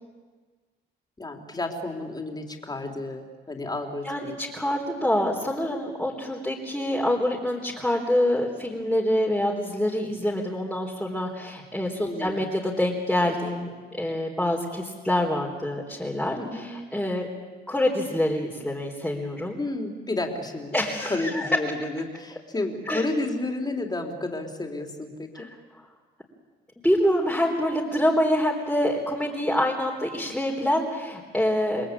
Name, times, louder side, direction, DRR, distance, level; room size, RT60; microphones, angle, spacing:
voice 1, 1.2-4.4 12.0-12.4 16.4-16.7 19.6-20.8 21.1-25.5, left 2 dB, 20° left, 3 dB, 4.1 m, -31 dB
voice 2, 4.0-13.7 14.0-17.3 17.7-19.6 20.7-21.5 22.9-23.0 25.3-25.5 26.8-31.9, left 1 dB, 5° left, -3 dB, 4.0 m, -26 dB
29.0 x 21.5 x 8.6 m, 1.4 s
cardioid pair, 90°, 20 cm